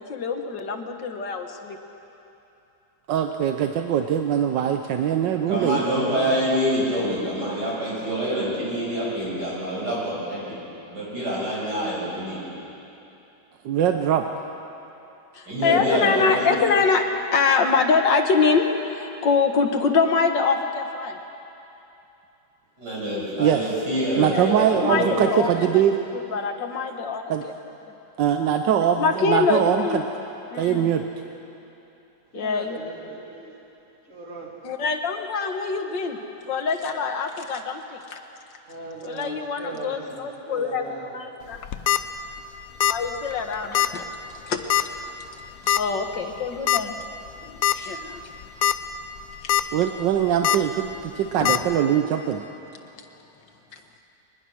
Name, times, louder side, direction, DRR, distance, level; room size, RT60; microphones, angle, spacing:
voice 1, 0.0-1.8 15.4-17.0 17.3-21.2 24.3-25.5 26.3-27.5 29.0-30.0 30.5-30.9 32.3-32.8 34.6-36.2 36.5-38.2 39.0-41.6 42.9-44.0 44.4-44.6 45.8-47.0 47.5-48.2 51.4-51.5, left 5 dB, 85° left, 5 dB, 2.1 m, -24 dB
voice 2, 3.1-5.9 13.6-14.3 23.4-23.6 24.1-26.0 27.3-27.4 28.2-30.0 30.5-31.0 49.7-52.4, right 9 dB, 85° right, 5 dB, 1.5 m, -22 dB
voice 3, 5.5-10.6 10.9-12.5 15.5-16.6 22.8-25.6, equal, 70° right, -6 dB, 7.6 m, -26 dB
voice 4, 32.3-33.6 34.1-34.5 38.7-41.1 41.4-41.6, right 3 dB, 45° right, -3 dB, 3.6 m, -38 dB
sound 1, 41.5-42.0 42.8-43.1 43.3-43.4 43.7-43.9 44.7-45.0 45.7-45.8 46.7-46.8 47.3-47.4 47.6-47.7 48.4-48.7 49.2-49.6 50.4-50.6 51.4-51.6, left 11 dB, 65° left, 1.0 m, -20 dB
23.0 x 20.5 x 6.3 m, 2.9 s
omnidirectional pair, 1.9 m